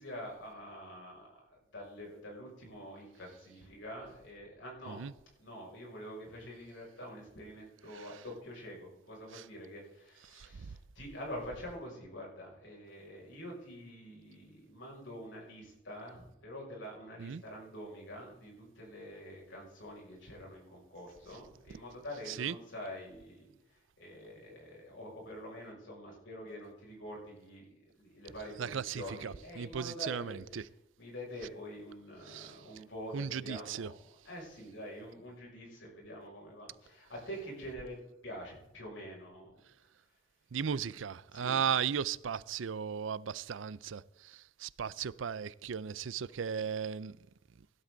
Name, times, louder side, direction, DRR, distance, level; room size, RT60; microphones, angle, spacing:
voice 1, 0.0-5.0 5.4-30.4 31.0-39.6 41.3-41.6, equal, 65° left, 6.3 m, -46 dB
voice 2, 10.3-10.8 17.2-17.4 22.3-22.5 28.6-30.6 32.3-32.5 33.1-33.9 40.5-47.2, right 7 dB, 70° right, 0.5 m, -36 dB
17.0 x 11.5 x 3.9 m
head